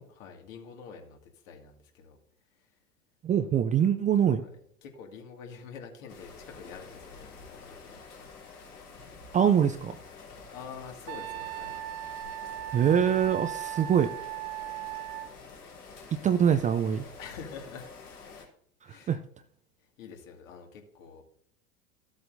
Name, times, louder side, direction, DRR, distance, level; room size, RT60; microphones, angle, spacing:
voice 1, 0.2-2.2 2.5-2.7 4.4-4.5 4.8-8.3 10.5-11.8 17.2-17.9 18.8-19.1 20.0-21.2, left 6 dB, 60° left, 2 dB, 2.4 m, -46 dB
voice 2, 3.2-4.4 9.3-9.9 12.7-14.1 16.1-17.1 18.8-19.2, right 8 dB, 20° right, 9 dB, 0.5 m, -24 dB
sound 1, 6.1-18.4, left 4 dB, 80° left, 3.4 m, -48 dB
Wind instrument woodwind instrument, 11.1-15.3, right 15 dB, 45° right, 0.9 m, -38 dB
14.0 x 8.1 x 2.7 m, 0.66 s
hypercardioid pair, 90°, 44 cm